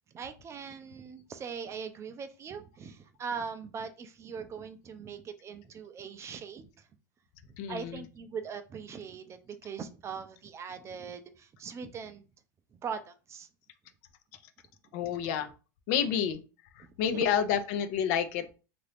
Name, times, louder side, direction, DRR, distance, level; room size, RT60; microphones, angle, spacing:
voice 1, 0.1-6.9 7.5-12.2 12.7-13.5 17.1-17.3, right 6 dB, 30° right, 0.4 m, -41 dB
voice 2, 7.6-7.9 14.9-15.5 15.9-16.4 16.8-18.6, left 8 dB, 60° left, 0.5 m, -29 dB
2.7 x 2.5 x 3.3 m
supercardioid pair, 110°, 10 cm